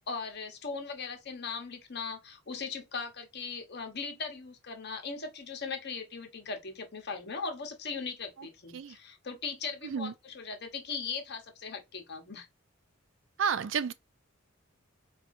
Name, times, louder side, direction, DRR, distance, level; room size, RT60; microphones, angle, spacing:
voice 1, 0.1-12.5, left 5 dB, 50° left, 0.9 m, -39 dB
voice 2, 9.8-10.1 13.4-13.9, right 6 dB, 60° right, 0.3 m, -31 dB
4.2 x 2.4 x 2.5 m
head